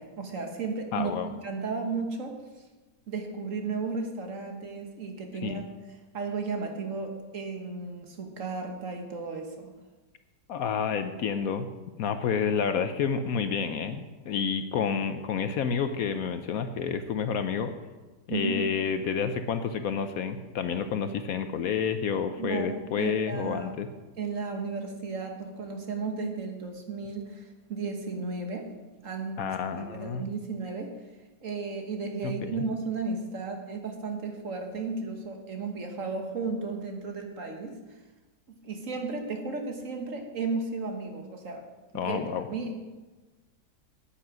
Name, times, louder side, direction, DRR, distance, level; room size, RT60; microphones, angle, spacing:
voice 1, 0.0-2.4 3.1-5.6 6.1-9.7 18.3-18.6 22.4-23.7 24.2-28.7 29.0-30.9 31.4-37.8 38.5-41.6 41.9-42.2 42.5-42.8, right 4 dB, 55° right, 3 dB, 1.6 m, -34 dB
voice 2, 0.9-1.3 5.4-5.6 10.5-11.7 12.0-17.7 18.3-23.9 29.4-30.2 32.2-32.6 41.9-42.5, left 6 dB, 70° left, 9 dB, 1.0 m, -29 dB
9.9 x 8.8 x 6.2 m, 1.2 s
omnidirectional pair, 1.8 m